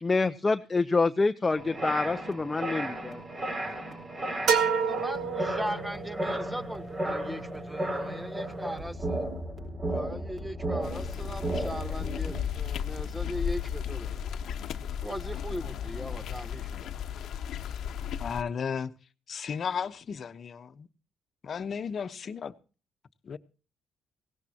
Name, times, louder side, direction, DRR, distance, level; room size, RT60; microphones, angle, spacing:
voice 1, 0.0-3.2, left 3 dB, 25° left, 0.8 m, -27 dB
sound 1, 1.5-12.4, right 1 dB, 35° right, 6.8 m, -34 dB
sound 2, 4.5-6.2, right 6 dB, 80° right, 1.8 m, -28 dB
voice 2, 4.8-9.3 9.9-14.2 15.0-17.2, equal, 10° right, 1.5 m, -39 dB
sound 3, 10.8-18.4, left 8 dB, 70° left, 1.1 m, -35 dB
voice 3, 18.2-18.9 19.3-20.9 21.4-22.5 23.2-23.4, left 6 dB, 50° left, 1.2 m, -34 dB
18.0 x 17.5 x 3.0 m
cardioid pair, 90°, 0 cm